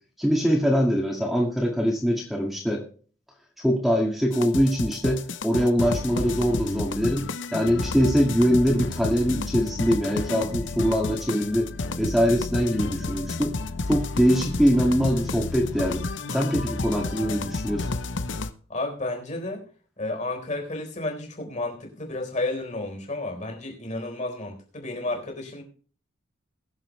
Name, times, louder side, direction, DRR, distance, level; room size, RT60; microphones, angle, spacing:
voice 1, 0.2-2.8 3.6-11.7 12.0-13.5 13.9-16.0 16.3-18.0, equal, ahead, 0 dB, 1.9 m, -23 dB
sound 1, 4.3-18.5, left 3 dB, 60° left, 0.8 m, -31 dB
voice 2, 18.7-19.6 20.0-25.6, left 2 dB, 35° left, 3 dB, 4.1 m, -31 dB
21.5 x 7.2 x 3.2 m, 0.42 s
head